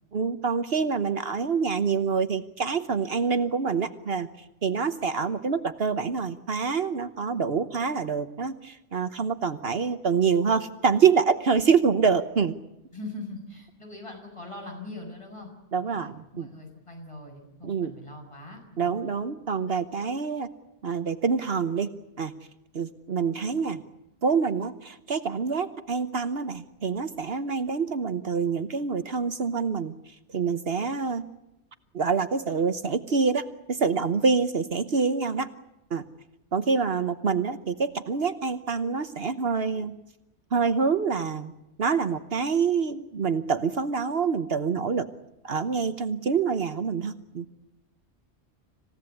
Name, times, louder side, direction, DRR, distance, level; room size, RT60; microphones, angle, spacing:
voice 1, 0.1-12.6 15.7-16.5 17.6-17.9 18.8-20.5 20.8-21.9 22.2-22.3 22.7-23.8 24.2-31.3 31.9-35.5 35.9-36.0 36.5-39.9 40.5-41.5 41.8-45.1 45.4-47.5, right 5 dB, 60° right, 11 dB, 1.3 m, -26 dB
voice 2, 12.9-15.5 15.8-19.0, left 2 dB, 25° left, 2 dB, 7.4 m, -42 dB
27.0 x 16.5 x 9.7 m, 0.91 s
omnidirectional pair, 1.1 m